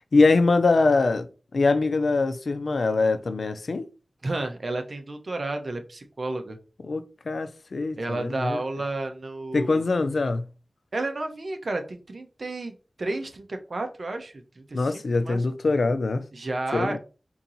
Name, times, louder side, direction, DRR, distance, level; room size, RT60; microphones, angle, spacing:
voice 1, 0.1-1.3 1.5-3.9 6.8-8.6 9.5-10.5 14.7-16.2 16.7-17.0, left 3 dB, 80° left, 0.5 m, -23 dB
voice 2, 4.2-6.6 8.0-9.9 10.9-15.4 16.3-17.0, right 2 dB, 70° right, 1.0 m, -32 dB
4.6 x 2.9 x 3.9 m
cardioid pair, 40°, 0 cm